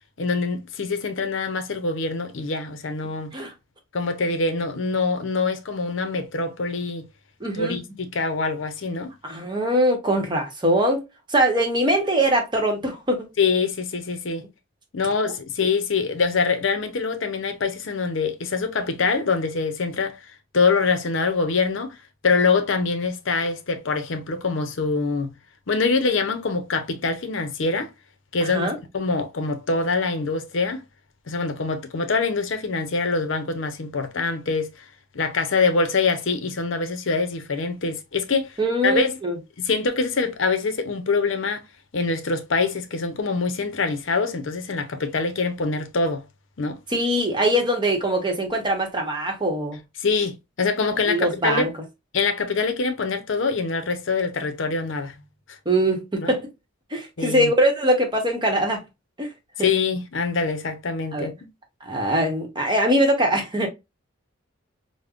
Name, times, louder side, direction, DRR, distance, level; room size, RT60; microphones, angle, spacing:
voice 1, 0.2-3.3 3.9-7.1 7.5-9.1 13.4-14.5 14.9-20.2 20.5-22.0 22.2-25.3 25.7-27.9 28.3-28.7 28.9-30.8 31.3-34.8 35.1-38.6 38.8-39.2 39.6-41.6 41.9-46.2 46.6-46.8 50.0-51.7 52.1-55.2 55.5-55.6 56.2-56.3 57.2-57.5 59.6-61.3, left 4 dB, 65° left, 0.7 m, -24 dB
voice 2, 7.4-7.8 9.2-11.0 11.3-13.3 28.5-28.8 38.6-39.4 46.9-49.8 51.1-51.7 55.7-56.5 56.9-58.8 59.2-59.3 59.6-59.7 61.1-61.3 61.8-63.7, right 1 dB, 25° right, 0.9 m, -22 dB
5.2 x 2.1 x 2.4 m
head